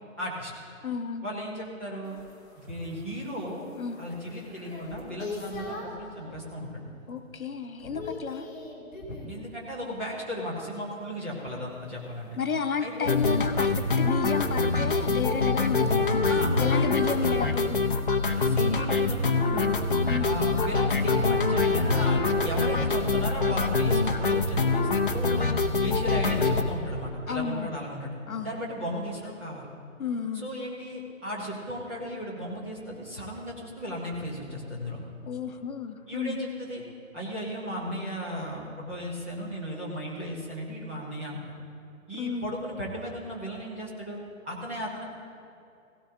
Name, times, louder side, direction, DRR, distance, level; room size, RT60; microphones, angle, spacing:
voice 1, 0.2-0.5 1.2-2.2 2.6-3.7 4.0-6.8 9.3-12.4 12.8-13.1 16.3-17.4 18.3-19.8 20.2-25.5 25.8-28.1 28.4-29.7 30.3-35.0 36.1-36.8 37.1-41.4 42.1-44.2 44.4-45.0, equal, 10° right, -6 dB, 1.0 m, -35 dB
voice 2, 0.8-1.3 3.8-4.0 7.1-8.5 12.4-16.2 16.6-17.8 20.0-20.3 27.3-27.7 28.3-28.6 30.0-30.5 35.2-36.4 42.1-42.5, left 6 dB, 80° left, 7 dB, 1.4 m, -32 dB
sound 1, 2.0-6.1 6.6-7.0 7.3-9.4 11.9-20.3, left 3 dB, 15° left, 1.5 m, -45 dB
sound 2, 13.0-26.6, left 3 dB, 40° left, 0.7 m, -24 dB
sound 3, 19.5-26.6, left 1 dB, 35° right, 3.6 m, -39 dB
17.0 x 17.0 x 2.8 m, 2.7 s
hypercardioid pair, 175°, 41 cm